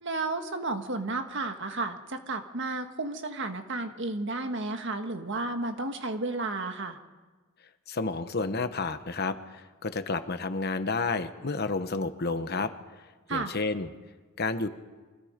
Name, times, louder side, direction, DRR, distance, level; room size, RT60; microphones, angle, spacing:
voice 1, 0.0-7.0 13.3-13.5, right 2 dB, 55° right, 6 dB, 1.7 m, -32 dB
voice 2, 7.9-12.7 13.3-13.9 14.4-14.7, left 3 dB, 45° left, 9 dB, 1.1 m, -30 dB
28.5 x 24.5 x 5.2 m, 1.3 s
head